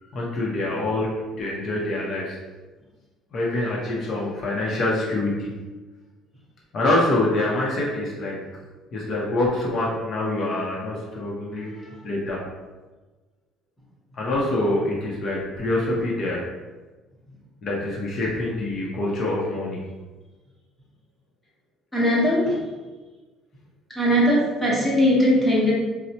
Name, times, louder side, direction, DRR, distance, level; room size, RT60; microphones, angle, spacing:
voice 1, 0.1-1.1 1.4-2.4 3.3-5.5 6.7-8.4 8.9-11.7 12.0-12.4 14.1-16.4 17.6-19.8, left 2 dB, 40° left, -4 dB, 0.6 m, -25 dB
voice 2, 11.6-12.0 21.9-22.6 23.9-25.7, equal, 5° left, -6 dB, 0.9 m, -20 dB
4.2 x 2.0 x 2.7 m, 1.2 s
cardioid pair, 160°, 0 cm